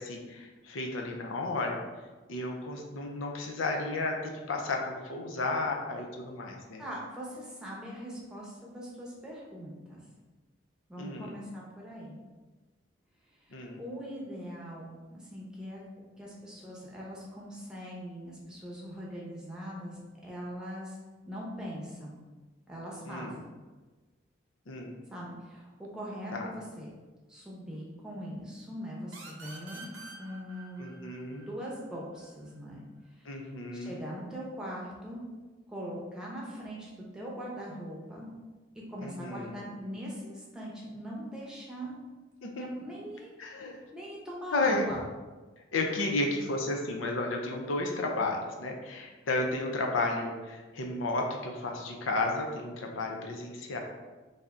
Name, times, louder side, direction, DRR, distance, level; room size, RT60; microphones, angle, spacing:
voice 1, 0.0-1.8 2.3-6.8 11.0-11.4 13.5-13.8 23.1-23.4 24.7-24.9 26.3-26.5 30.8-31.5 33.2-34.0 39.0-39.5 42.4-42.6 43.4-43.8 44.5-44.9 45.7-53.8, left 2 dB, 90° left, 1 dB, 0.6 m, -33 dB
voice 2, 6.8-10.0 10.9-12.2 13.4-15.8 16.2-21.0 21.3-22.2 22.7-23.4 25.1-26.9 27.3-30.9 31.5-32.8 33.1-33.5 33.7-35.2 35.7-38.3 38.7-42.0 42.6-43.5 43.9-45.0, equal, 5° right, -5 dB, 0.7 m, -41 dB
sound 1, 29.1-32.5, right 3 dB, 85° right, 0.7 m, -49 dB
3.3 x 2.7 x 3.6 m, 1.3 s
head